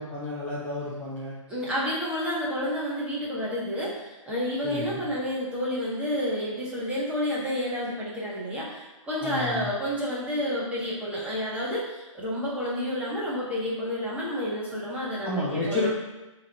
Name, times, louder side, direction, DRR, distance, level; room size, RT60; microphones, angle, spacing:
voice 1, 0.0-1.3 4.6-5.0 9.2-9.7 15.2-15.9, left 2 dB, 10° left, -9 dB, 1.1 m, -31 dB
voice 2, 1.5-15.9, equal, 5° right, -8 dB, 1.6 m, -30 dB
5.5 x 3.3 x 5.4 m, 1.1 s
hypercardioid pair, 140°, 17 cm